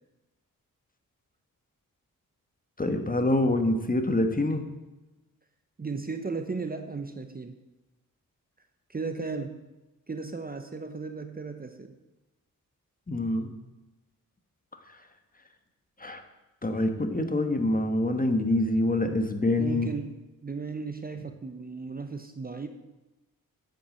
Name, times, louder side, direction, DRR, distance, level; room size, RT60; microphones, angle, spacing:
voice 1, 2.8-4.6 13.1-13.5 14.9-15.0 16.0-16.2 16.6-19.9, left 1 dB, 25° left, 6 dB, 1.3 m, -26 dB
voice 2, 5.8-7.6 8.9-9.7 10.1-12.0 19.6-22.7, right 4 dB, 25° right, 8 dB, 0.8 m, -35 dB
8.5 x 8.3 x 7.6 m, 1.1 s
cardioid pair, 85°, 34 cm